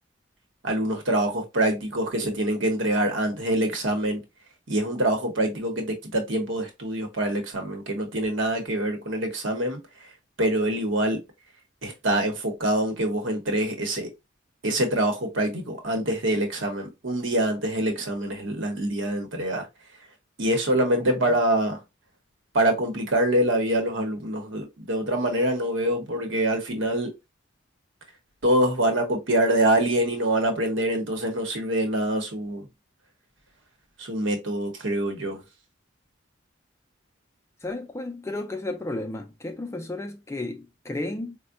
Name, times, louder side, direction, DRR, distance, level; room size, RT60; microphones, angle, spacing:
voice 1, 0.6-4.2 4.7-9.8 10.4-11.2 11.8-14.1 14.6-19.7 20.4-21.8 22.5-27.1 28.4-32.7 34.0-35.4, right 1 dB, 70° right, 1.0 m, -25 dB
voice 2, 37.6-41.4, left 2 dB, 15° left, 0.3 m, -33 dB
4.4 x 2.1 x 2.5 m
head